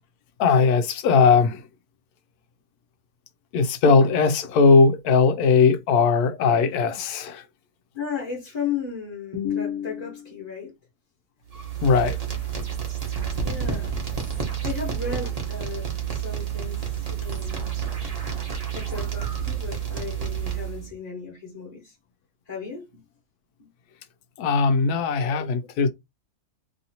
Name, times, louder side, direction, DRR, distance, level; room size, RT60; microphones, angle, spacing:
voice 1, 0.4-1.6 3.5-7.4 11.8-12.2 24.4-25.9, left 4 dB, 75° left, 1.1 m, -19 dB
voice 2, 7.9-10.7 13.4-13.9 14.6-17.7 18.7-22.0 22.5-23.0 23.6-23.7 25.2-25.5, left 7 dB, 25° left, 1.1 m, -34 dB
sound 1, 11.5-20.9, right 8 dB, 30° right, 0.9 m, -29 dB
3.0 x 2.7 x 2.8 m
omnidirectional pair, 1.7 m